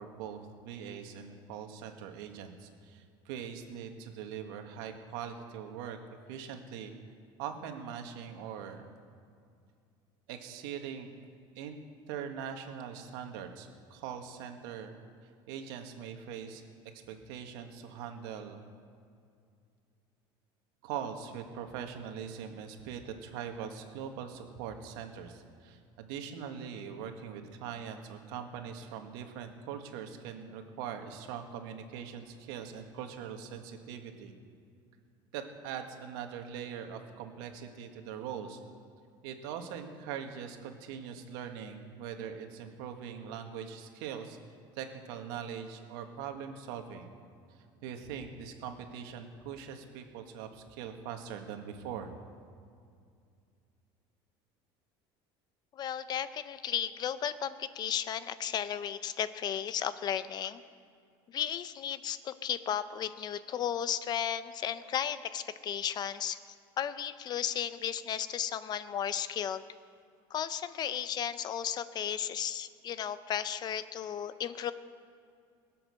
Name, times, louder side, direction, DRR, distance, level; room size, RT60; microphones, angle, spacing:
voice 1, 0.0-6.0 6.3-6.9 7.4-8.9 10.3-11.1 11.5-11.8 12.1-14.9 15.5-16.6 17.1-18.6 20.8-34.3 35.3-38.6 39.2-44.4 44.7-47.1 47.8-52.1, right 8 dB, 85° right, 5 dB, 1.7 m, -42 dB
voice 2, 55.7-60.6 61.3-66.4 66.8-69.6 70.3-74.7, left 9 dB, 35° left, 14 dB, 0.7 m, -34 dB
21.5 x 7.8 x 6.4 m, 2.3 s
cardioid pair, 140°, 12 cm